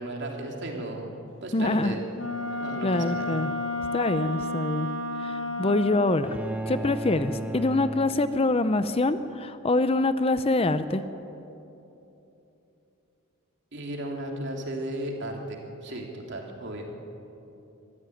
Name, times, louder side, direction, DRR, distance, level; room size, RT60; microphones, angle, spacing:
voice 1, 0.0-2.1 2.6-3.3 13.7-16.9, right 1 dB, 50° right, 1 dB, 3.1 m, -35 dB
voice 2, 1.5-1.9 2.8-3.5 3.9-4.9 5.2-6.4 6.7-11.0, left 2 dB, 25° left, 11 dB, 0.6 m, -25 dB
Wind instrument woodwind instrument, 2.1-6.2, left 2 dB, 55° left, 1.7 m, -31 dB
sound 1, 6.2-8.8, right 1 dB, 5° right, 1.0 m, -35 dB
24.0 x 14.0 x 9.2 m, 3.0 s
head